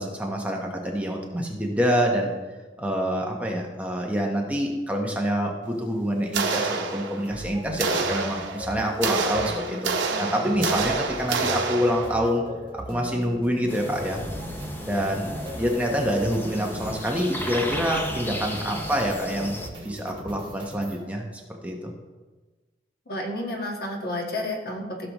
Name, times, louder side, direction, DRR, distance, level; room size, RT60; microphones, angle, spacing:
voice 1, 0.0-2.3 2.8-9.9 10.2-12.4 12.7-14.2 14.9-15.3 15.5-21.3 21.6-21.9, equal, 10° right, 0 dB, 1.0 m, -26 dB
sound 1, 6.3-7.4 7.8-12.3, right 4 dB, 85° right, 0.9 m, -28 dB
sound 2, 7.3-21.0, equal, 30° right, 2.3 m, -39 dB
sound 3, 13.7-19.7, left 1 dB, 10° left, 0.7 m, -36 dB
voice 2, 23.1-25.1, left 1 dB, 55° left, 0 dB, 1.6 m, -31 dB
15.5 x 6.8 x 3.0 m, 1.3 s
head